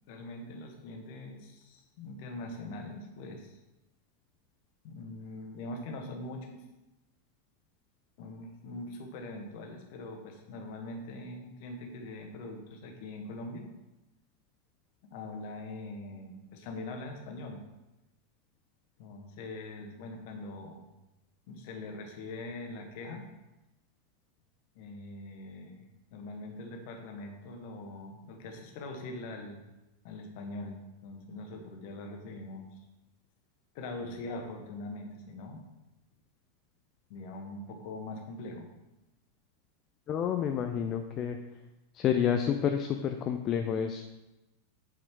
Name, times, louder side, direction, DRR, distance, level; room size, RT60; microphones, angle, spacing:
voice 1, 0.1-3.6 4.8-6.6 8.2-13.7 15.1-17.6 19.0-20.9 21.5-23.3 24.7-29.6 30.0-32.8 33.7-35.6 37.1-38.7, left 2 dB, 50° left, 3 dB, 1.5 m, -42 dB
voice 2, 40.1-41.4 41.9-44.0, left 8 dB, 30° left, 6 dB, 0.6 m, -29 dB
8.6 x 5.0 x 4.7 m, 1.0 s
figure-of-eight pair, 90°, 0 cm